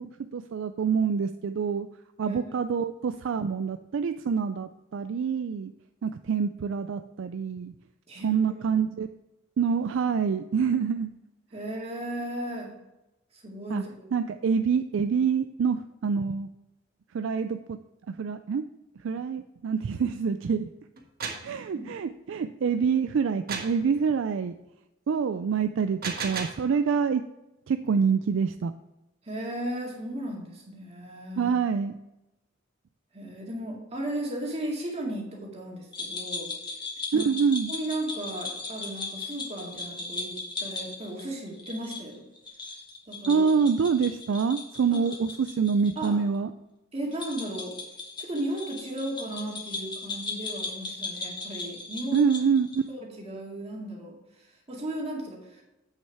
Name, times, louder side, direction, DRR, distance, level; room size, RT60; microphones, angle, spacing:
voice 1, 0.0-1.9 2.2-5.7 6.0-7.7 8.2-9.1 9.6-11.1 13.7-13.8 14.1-16.5 17.1-17.8 18.1-18.7 19.0-20.7 21.4-24.5 25.1-27.2 27.7-28.7 31.4-32.0 37.1-37.7 43.3-46.5 52.1-52.8, right 6 dB, 65° right, 9 dB, 0.4 m, -26 dB
voice 2, 2.2-2.6 8.1-8.8 11.5-12.7 13.3-14.2 21.7-21.8 29.2-31.6 33.1-36.5 37.1-37.4 37.7-42.3 43.1-43.5 44.9-45.0 46.0-46.2 46.9-47.7 48.2-52.3 52.9-55.6, right 1 dB, 30° right, -1 dB, 2.1 m, -35 dB
sound 1, 21.0-21.5 23.5-23.8 25.8-26.7, right 5 dB, 50° right, 1.3 m, -34 dB
sound 2, 35.9-46.1 46.3-46.4 47.1-52.9, left 3 dB, 25° left, 1.5 m, -37 dB
8.2 x 6.3 x 4.6 m, 0.94 s
head